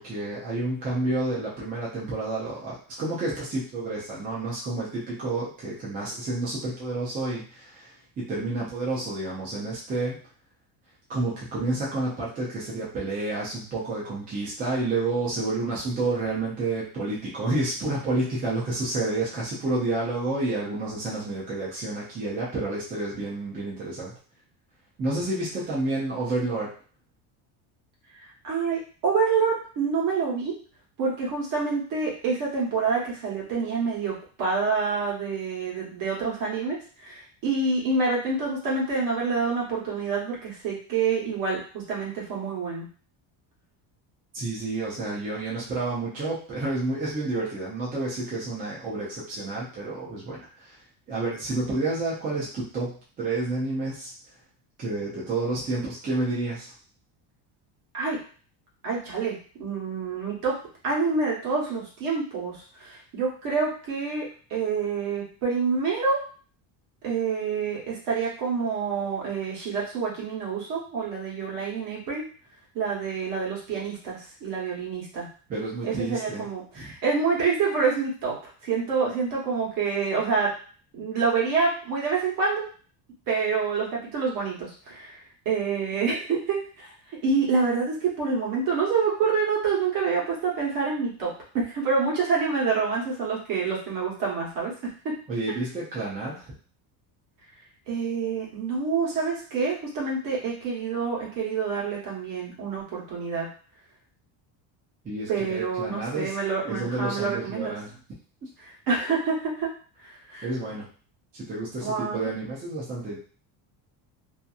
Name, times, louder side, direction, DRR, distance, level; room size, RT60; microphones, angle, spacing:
voice 1, 0.0-10.2 11.1-24.1 25.0-26.7 44.3-50.8 51.1-54.1 54.8-56.7 75.5-76.5 76.7-76.9 95.3-96.5 105.0-106.3 106.6-107.9 110.4-110.9 111.3-113.2, right 2 dB, 20° right, -7 dB, 0.4 m, -30 dB
voice 2, 28.2-30.5 31.0-42.8 57.9-58.2 58.8-60.5 60.8-64.2 64.5-66.2 67.0-72.2 72.7-75.3 75.8-78.3 78.6-80.5 80.9-82.7 83.3-86.9 87.2-94.7 97.9-103.5 105.3-107.7 108.6-109.7 110.0-110.5 111.8-112.3, right 5 dB, 45° right, -4 dB, 1.1 m, -27 dB
2.7 x 2.5 x 2.3 m, 0.41 s
cardioid pair, 175°, 46 cm